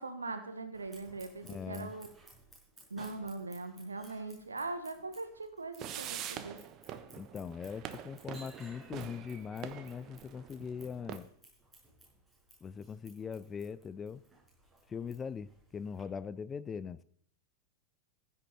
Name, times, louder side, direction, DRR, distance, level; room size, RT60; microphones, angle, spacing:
voice 1, 0.0-2.1 2.9-6.6, right 3 dB, 75° right, 1.5 m, -41 dB
Scissors, 0.7-16.0, right 1 dB, 5° right, 5.9 m, -59 dB
voice 2, 1.4-1.9 7.1-11.3 12.6-14.2 14.9-17.0, left 6 dB, 20° left, 0.5 m, -41 dB
sound 1, 5.8-11.2, right 10 dB, 35° right, 1.0 m, -45 dB
15.0 x 9.5 x 4.3 m
figure-of-eight pair, 90°, 0 cm